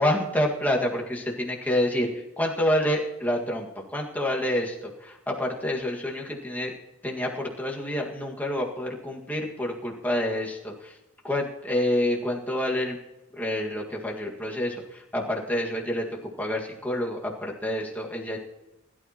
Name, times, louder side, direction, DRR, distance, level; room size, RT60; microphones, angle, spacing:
voice 1, 0.0-2.1 2.4-4.8 5.0-6.7 7.0-10.9 11.2-13.0 13.3-18.4, left 1 dB, 10° left, -2 dB, 1.8 m, -28 dB
21.0 x 12.5 x 3.0 m, 0.97 s
head